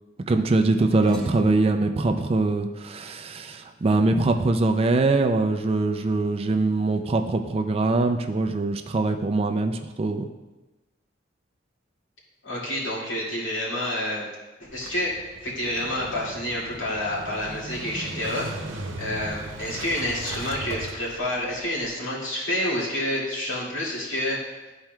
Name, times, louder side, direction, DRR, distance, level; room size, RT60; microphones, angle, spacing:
voice 1, 0.3-10.3, right 3 dB, 30° right, 6 dB, 0.4 m, -23 dB
sound 1, 0.8-5.5, equal, 5° left, 1.5 m, -42 dB
voice 2, 12.4-14.3 14.6-15.2 15.4-24.4, left 1 dB, 70° left, -7 dB, 2.3 m, -29 dB
Motorcycle / Engine starting, 14.7-21.9, right 2 dB, 80° right, 0.9 m, -38 dB
12.0 x 4.4 x 2.3 m, 1.1 s
head